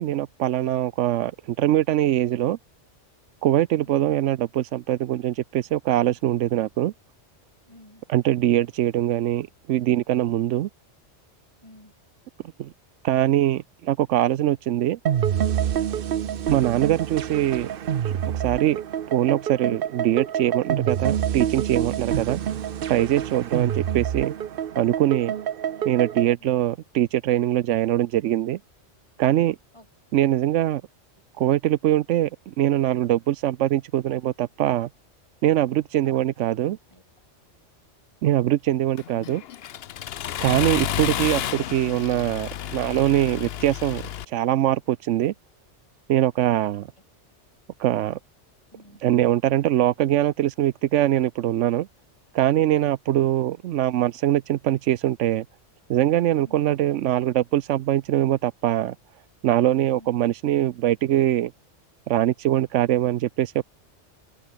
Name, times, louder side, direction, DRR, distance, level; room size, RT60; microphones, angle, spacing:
voice 1, 0.0-2.6 3.4-6.9 8.1-10.7 12.6-12.7 13.0-15.0 16.5-17.7 18.3-18.8 19.1-22.4 22.9-24.3 24.8-25.3 25.8-28.6 29.2-29.6 30.1-30.8 31.4-34.9 35.4-36.8 38.2-39.4 40.4-45.3 46.1-46.8 47.8-48.2 49.0-51.9 52.3-55.5 55.9-59.0 59.4-61.5 62.1-63.6, right 13 dB, 90° right, 1.0 m, -22 dB
voice 2, 7.7-8.0 11.6-11.9 16.2-16.5 26.4-26.5 29.7-29.9 36.0-36.2 36.9-37.0 46.6-46.7 48.7-49.0 52.8-52.9 56.4-56.6 59.9-60.1, left 1 dB, 25° left, 3.7 m, -50 dB
sound 1, 15.1-26.3, right 9 dB, 55° right, 0.8 m, -27 dB
Accelerating revving vroom, 39.0-44.2, left 10 dB, 65° left, 0.8 m, -31 dB
open air
omnidirectional pair, 1.2 m